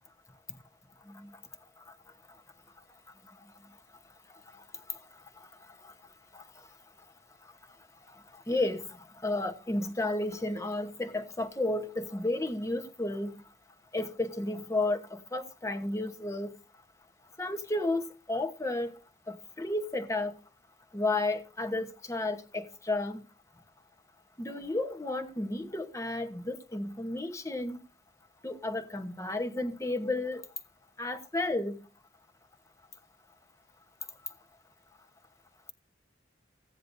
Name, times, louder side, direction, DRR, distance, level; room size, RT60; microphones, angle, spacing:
voice 1, 8.5-8.9 9.2-13.3 13.9-16.5 17.4-18.9 19.3-20.3 20.9-23.2 24.4-27.8 28.4-30.4 31.0-31.8, left 2 dB, 15° left, 1.1 m, -32 dB
16.0 x 9.8 x 2.7 m
head